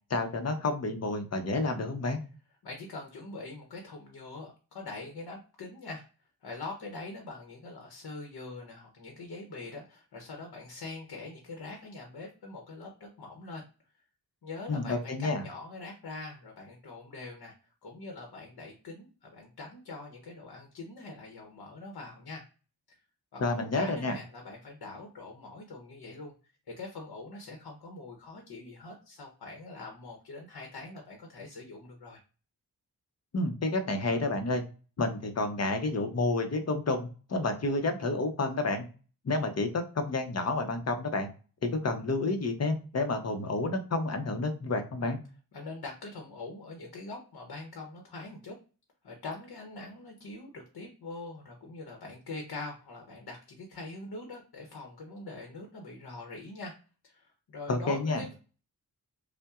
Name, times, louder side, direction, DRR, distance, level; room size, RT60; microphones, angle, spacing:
voice 1, 0.1-2.2 14.7-15.4 23.4-24.2 33.3-34.6 35.0-38.9 39.2-41.3 41.6-45.2 57.7-58.2, left 2 dB, 40° left, 6 dB, 0.7 m, -30 dB
voice 2, 2.6-6.1 6.4-13.6 14.4-17.5 17.8-22.4 22.9-23.0 23.3-32.2 45.5-48.6 49.0-56.7 57.0-58.3, left 3 dB, 75° left, 2 dB, 0.9 m, -43 dB
5.4 x 2.1 x 2.4 m, 0.35 s
wide cardioid pair, 135°, 38 cm